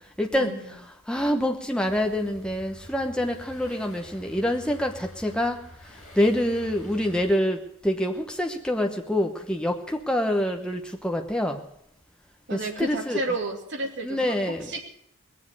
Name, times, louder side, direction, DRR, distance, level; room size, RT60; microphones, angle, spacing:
voice 1, 0.2-0.5 1.1-5.6 6.1-11.6 12.5-13.2 14.0-14.8, left 1 dB, 5° left, 3 dB, 1.0 m, -26 dB
sound 1, 1.8-7.3, equal, 30° left, 5.4 m, -47 dB
voice 2, 12.5-14.2 14.7-14.8, right 2 dB, 50° right, 2 dB, 2.5 m, -31 dB
20.0 x 7.5 x 8.2 m, 0.71 s
head